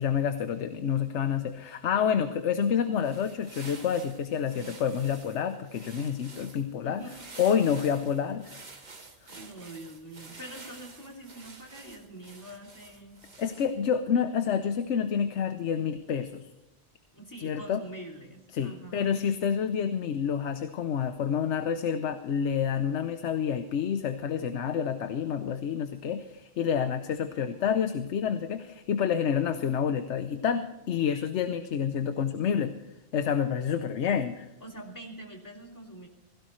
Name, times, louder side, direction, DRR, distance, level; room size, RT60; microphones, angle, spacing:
voice 1, 0.0-7.0 7.4-8.5 13.4-16.5 17.4-17.8 18.5-32.7 33.1-34.5, left 7 dB, 80° left, 9 dB, 1.1 m, -28 dB
sound 1, 2.9-13.9, right 3 dB, 40° right, 1.4 m, -50 dB
voice 2, 6.8-7.1 7.5-7.7 9.3-13.2 17.1-19.1 34.6-36.1, right 1 dB, 15° left, -1 dB, 2.7 m, -45 dB
17.0 x 16.5 x 3.2 m, 0.98 s
omnidirectional pair, 1.2 m